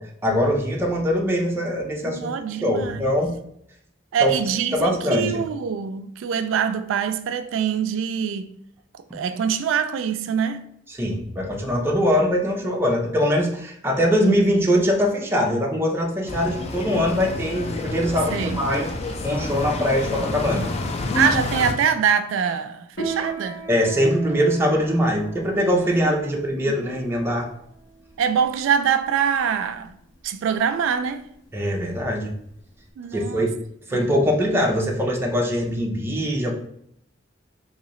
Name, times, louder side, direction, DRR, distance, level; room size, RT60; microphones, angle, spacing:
voice 1, 0.2-2.3 2.6-3.3 4.2-4.3 4.7-5.4 11.0-18.9 19.2-20.7 23.7-27.5 31.5-32.3 33.1-33.5 33.9-36.5, equal, 15° right, 0.6 m, -22 dB
voice 2, 2.1-3.1 4.1-8.5 8.9-10.6 18.3-18.6 21.1-23.6 26.0-26.8 28.2-29.9 30.2-31.3 33.0-33.5 33.9-34.0, right 7 dB, 90° right, 0.3 m, -24 dB
sound 1, 16.3-21.7, left 2 dB, 35° left, 0.4 m, -28 dB
Piano, 22.9-32.9, right 4 dB, 70° left, 1.2 m, -38 dB
3.9 x 2.7 x 3.0 m
head